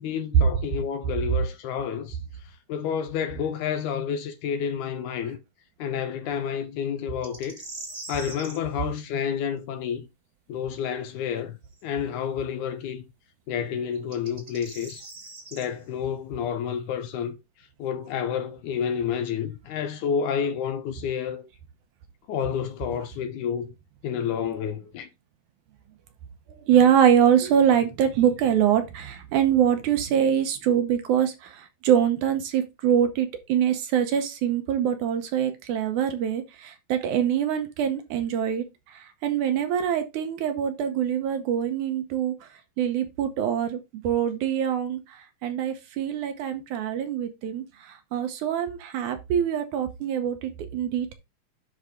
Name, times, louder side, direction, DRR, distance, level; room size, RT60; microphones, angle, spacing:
voice 1, 0.0-2.2 2.7-5.4 5.8-7.6 8.1-10.1 10.5-11.6 11.8-13.0 13.5-15.0 15.5-17.4 17.8-21.5 22.3-23.7 24.0-25.1, left 8 dB, 75° left, 1.9 m, -29 dB
sound 1, 7.2-8.6 11.7-11.8 13.9-15.7, right 2 dB, 30° right, 1.0 m, -41 dB
voice 2, 26.5-42.5 42.8-45.0 45.4-51.1, right 9 dB, 75° right, 2.1 m, -24 dB
10.5 x 4.0 x 3.6 m
omnidirectional pair, 3.9 m